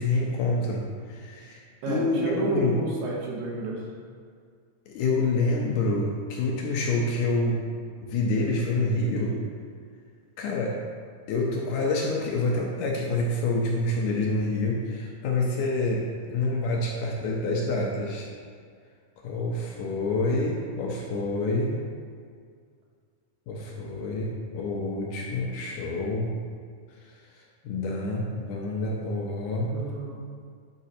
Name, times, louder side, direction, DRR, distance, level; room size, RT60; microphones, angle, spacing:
voice 1, 0.0-1.6 1.9-2.8 4.9-7.6 8.0-9.4 10.4-10.8 11.3-18.3 19.2-21.8 23.5-26.3 27.1-29.8, left 2 dB, 75° left, -2 dB, 2.0 m, -27 dB
voice 2, 1.8-3.8 29.6-30.3, right 3 dB, 75° right, -3 dB, 2.6 m, -31 dB
8.5 x 4.0 x 4.2 m, 2.1 s
omnidirectional pair, 4.2 m